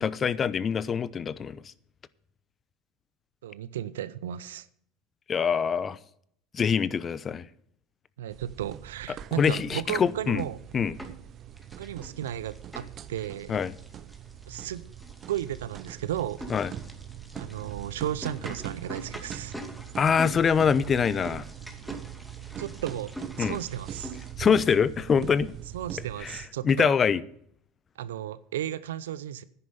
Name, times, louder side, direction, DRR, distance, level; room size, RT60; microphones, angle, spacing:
voice 1, 0.0-1.6 5.3-6.0 6.5-7.5 9.4-10.4 10.7-10.9 13.5-13.7 16.5-16.7 20.0-21.4 23.4-23.6 24.4-25.5 26.2-27.2, left 6 dB, 35° left, 0.7 m, -24 dB
voice 2, 3.4-4.7 8.2-10.6 11.8-13.6 14.5-14.8 15.3-16.5 17.4-19.6 21.9-22.0 22.6-23.1 23.4-24.2 25.7-26.9 28.0-29.4, right 11 dB, 85° right, 0.6 m, -34 dB
sound 1, 8.3-26.5, right 10 dB, 45° right, 0.8 m, -42 dB
sound 2, 10.4-11.3 11.6-24.3, right 1 dB, ahead, 2.5 m, -44 dB
10.5 x 9.9 x 5.6 m
hypercardioid pair, 80°, 0 cm